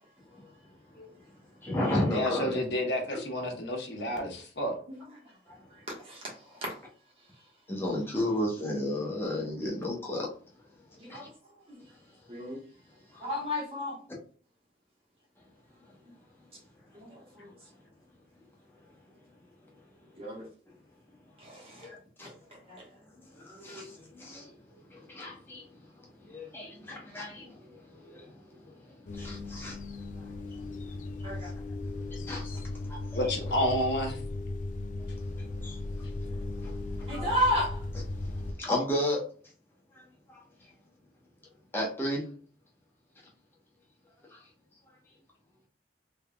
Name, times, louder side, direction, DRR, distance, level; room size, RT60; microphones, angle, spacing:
voice 1, 0.9-1.2 1.6-2.6 3.1-3.2 5.5-5.7 7.7-10.3 10.9-11.3 13.1-13.2 15.9-16.0 18.7-18.8 19.1-19.2 20.3-20.5 21.8-22.3 23.1-33.3 35.0-37.4 38.1-39.2 39.9-40.7 41.7-42.2 44.3-44.4, left 1 dB, 15° left, 1.0 m, -35 dB
voice 2, 2.0-4.8 33.1-34.2, left 1 dB, 80° left, 1.1 m, -30 dB
voice 3, 13.2-13.9 16.9-17.5 20.2-20.4 21.4-21.9 22.7-22.8 31.2-31.5 37.1-37.8, equal, 30° right, 1.4 m, -32 dB
sound 1, 29.1-38.5, left 2 dB, 45° left, 0.3 m, -37 dB
3.5 x 3.4 x 2.3 m
head